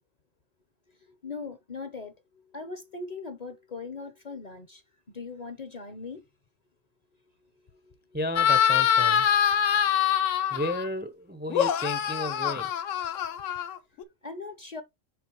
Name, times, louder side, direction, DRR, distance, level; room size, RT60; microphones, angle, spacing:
voice 1, 1.2-2.1 2.5-4.8 5.1-6.2 14.2-14.8, left 4 dB, 40° left, 0.6 m, -39 dB
voice 2, 8.1-9.3 10.5-12.7, left 1 dB, 15° right, 0.4 m, -33 dB
sound 1, 8.4-10.9 11.5-14.0, left 9 dB, 80° left, 1.1 m, -24 dB
6.8 x 5.1 x 3.0 m
omnidirectional pair, 1.3 m